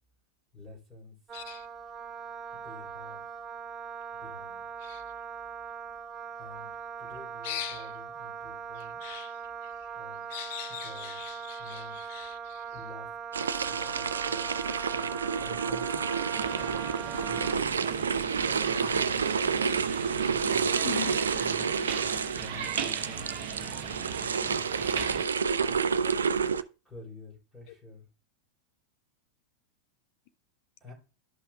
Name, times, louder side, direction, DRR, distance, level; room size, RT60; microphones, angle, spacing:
voice 1, 0.5-1.2 2.5-3.2 4.1-4.6 6.4-6.7 7.0-9.0 9.9-10.2 10.7-11.2 11.6-12.1 12.7-13.1 13.4-14.7 14.9-16.0 17.2-18.0 18.8-19.4 20.1-20.7 21.0-21.9 22.3-25.0 25.6-26.2 26.8-28.1 30.8-30.9, left 2 dB, 10° left, 3.5 m, -49 dB
voice 2, 1.3-1.7 4.8-5.0 7.4-7.9 9.0-9.3 10.3-12.6 20.8-21.2 25.2-25.3, left 12 dB, 50° left, 0.6 m, -40 dB
Wind instrument woodwind instrument, 1.3-17.5, right 7 dB, 25° right, 0.8 m, -40 dB
sound 1, 13.3-26.6, right 6 dB, 70° right, 0.3 m, -29 dB
sound 2, 16.3-25.3, right 7 dB, 55° right, 0.9 m, -38 dB
12.5 x 5.6 x 2.3 m
figure-of-eight pair, 90°, 0 cm